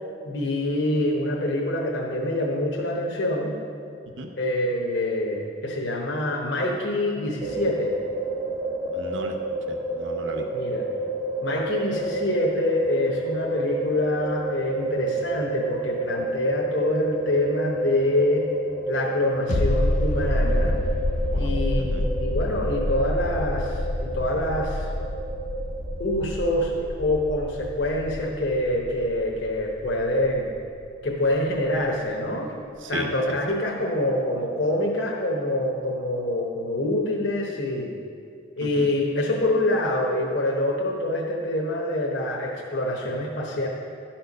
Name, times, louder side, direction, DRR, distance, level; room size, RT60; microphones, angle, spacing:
voice 1, 0.2-3.5 4.4-7.9 10.5-10.8 11.4-18.5 18.9-20.8 21.4-24.9 26.0-30.5 31.0-32.6 32.9-37.9 38.6-43.7, left 1 dB, 65° left, -2 dB, 0.9 m, -25 dB
sound 1, 7.4-26.5, right 2 dB, 20° right, 0.6 m, -30 dB
voice 2, 8.9-9.4 9.7-10.5 21.3-22.1 32.8-33.1 38.7-38.9, right 2 dB, 70° right, 4 dB, 0.6 m, -36 dB
sound 2, 19.5-30.8 31.1-31.2, left 1 dB, 40° left, 0.4 m, -28 dB
11.5 x 4.4 x 5.3 m, 2.4 s
head